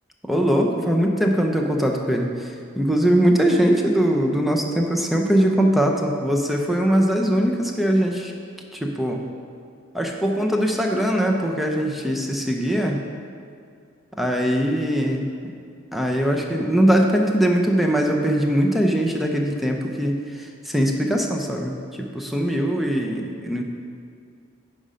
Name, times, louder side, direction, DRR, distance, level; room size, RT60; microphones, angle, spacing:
voice 1, 0.2-2.5 2.8-8.3 8.8-9.2 9.9-13.0 14.2-15.2 15.9-20.2 20.7-23.6, equal, ahead, 1 dB, 0.7 m, -21 dB
9.7 x 5.2 x 5.1 m, 2.3 s
head